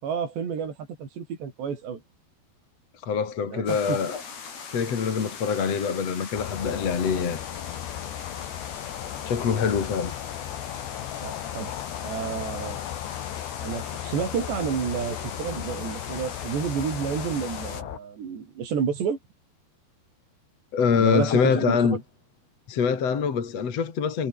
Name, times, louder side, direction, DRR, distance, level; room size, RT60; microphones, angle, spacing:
voice 1, 0.0-2.0 3.5-4.0 11.2-11.7 12.0-12.8 13.6-19.2 21.0-22.0, right 7 dB, 85° right, 6.5 m, -30 dB
voice 2, 3.0-4.2 4.7-7.4 9.3-10.1 20.7-22.0 22.7-24.3, left 6 dB, 40° left, 3.4 m, -24 dB
sound 1, 3.7-17.8, left 6 dB, 65° left, 6.8 m, -40 dB
sound 2, 6.3-18.0, left 13 dB, 90° left, 3.7 m, -36 dB
omnidirectional pair, 4.8 m